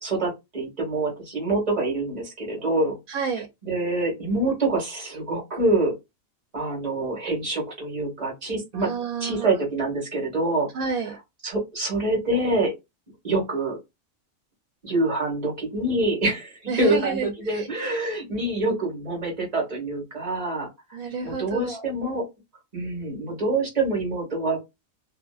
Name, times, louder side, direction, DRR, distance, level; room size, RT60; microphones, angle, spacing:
voice 1, 0.0-3.0 3.7-5.9 6.5-8.9 9.2-10.7 11.4-12.7 13.2-13.8 14.8-20.7 21.2-22.3 22.7-24.6, right 2 dB, 30° right, 1.4 m, -26 dB
voice 2, 3.1-3.5 8.7-9.6 10.7-11.2 16.7-17.7 20.9-21.8, right 5 dB, 85° right, 1.0 m, -30 dB
2.8 x 2.5 x 2.3 m
omnidirectional pair, 1.5 m